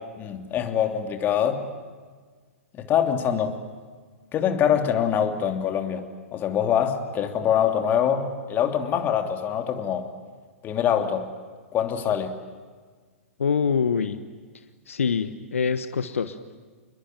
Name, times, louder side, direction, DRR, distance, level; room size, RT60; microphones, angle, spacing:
voice 1, 0.0-1.7 2.7-3.6 4.3-10.1 10.6-11.3 11.7-12.3, left 9 dB, 25° left, 5 dB, 3.0 m, -24 dB
voice 2, 13.4-14.2 14.9-16.6, left 6 dB, 70° left, 11 dB, 1.3 m, -25 dB
29.0 x 22.0 x 9.1 m, 1.5 s
figure-of-eight pair, 110°, 7 cm